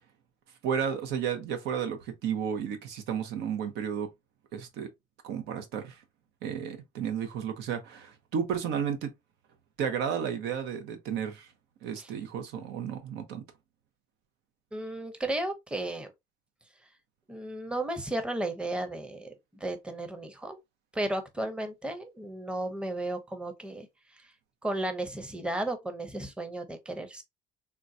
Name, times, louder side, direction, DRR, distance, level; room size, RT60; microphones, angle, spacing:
voice 1, 0.6-4.1 4.5-4.9 5.2-5.9 6.4-9.1 9.8-11.5 11.8-13.4, right 7 dB, 85° right, 0.8 m, -32 dB
voice 2, 14.7-16.1 17.3-19.3 19.6-20.6 20.9-23.9 24.6-27.2, right 1 dB, 5° right, 0.6 m, -34 dB
3.8 x 2.2 x 2.6 m
cardioid pair, 110°, 17 cm